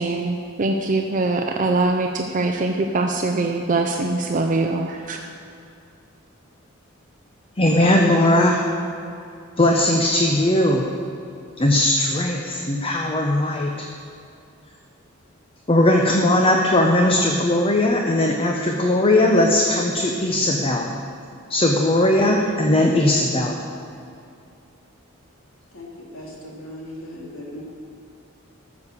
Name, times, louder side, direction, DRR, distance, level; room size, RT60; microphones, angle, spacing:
voice 1, 0.0-5.2, right 2 dB, 40° right, 3 dB, 0.6 m, -23 dB
voice 2, 7.6-8.6 9.6-10.8 11.6-13.7 15.7-20.9 21.5-23.6, left 1 dB, 25° left, 1 dB, 0.8 m, -18 dB
voice 3, 25.7-27.6, left 1 dB, 80° left, -3 dB, 2.8 m, -38 dB
13.0 x 7.2 x 6.7 m, 2.5 s
head